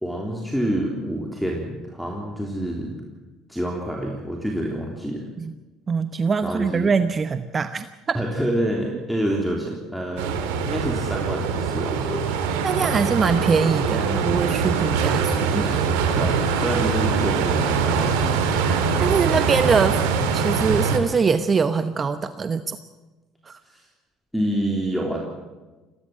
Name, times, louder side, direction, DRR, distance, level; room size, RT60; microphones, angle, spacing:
voice 1, 0.0-2.9 3.5-5.2 6.4-6.9 8.1-10.4 10.6-12.3 15.6-15.8 16.2-18.2 23.7-23.9 24.3-25.2, right 1 dB, ahead, 0 dB, 3.4 m, -27 dB
voice 2, 5.9-8.2 12.6-15.7 19.0-20.0 20.3-22.8 23.5-23.6, right 5 dB, 35° right, 11 dB, 0.9 m, -23 dB
sound 1, 10.2-21.0, right 5 dB, 80° right, 2.3 m, -23 dB
22.0 x 16.5 x 7.6 m, 1.2 s
hypercardioid pair, 70°, 0 cm